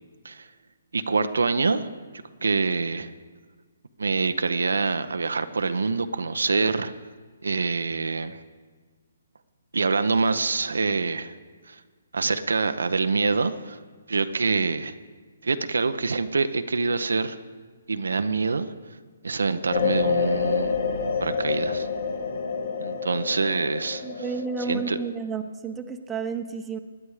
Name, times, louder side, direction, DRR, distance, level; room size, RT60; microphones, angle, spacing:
voice 1, 0.9-1.9 2.4-3.1 4.0-6.9 7.4-8.4 9.7-11.3 11.7-11.8 12.1-13.8 14.1-15.0 15.4-17.4 17.9-18.7 19.2-20.8 21.2-21.9 22.8-24.0 24.7-25.0, right 4 dB, 85° right, 10 dB, 0.7 m, -25 dB
sound 1, 19.7-24.9, left 5 dB, 65° left, 2.0 m, -28 dB
voice 2, 24.0-26.8, right 5 dB, 10° right, 6 dB, 0.8 m, -31 dB
18.5 x 10.0 x 4.9 m, 1.5 s
hypercardioid pair, 150°, 0 cm